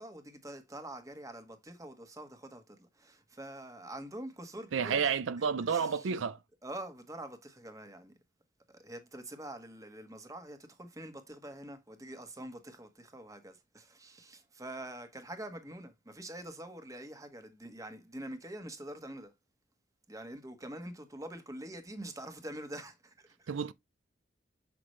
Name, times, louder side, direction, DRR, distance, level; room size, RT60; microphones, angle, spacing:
voice 1, 0.0-6.3 6.6-8.1 8.7-19.3 20.1-23.5, right 1 dB, 15° right, 1.3 m, -45 dB
voice 2, 4.7-6.4 23.5-23.7, right 6 dB, 85° right, 0.5 m, -30 dB
7.8 x 5.9 x 3.1 m
head